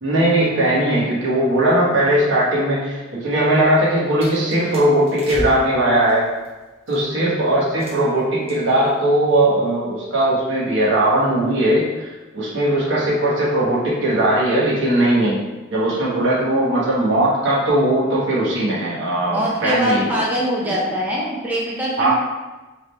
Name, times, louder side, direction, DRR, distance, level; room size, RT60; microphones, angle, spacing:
voice 1, 0.0-6.3 6.9-12.1 12.3-15.4 15.7-20.2 20.6-20.7 22.0-22.1, right 1 dB, 65° right, -6 dB, 1.3 m, -19 dB
sound 1, 3.8-7.2 7.8-8.2 8.5-8.9 9.1-9.4, equal, 30° right, 1.2 m, -34 dB
voice 2, 19.3-22.1, equal, 10° right, -6 dB, 0.5 m, -23 dB
3.7 x 3.2 x 3.2 m, 1.2 s
head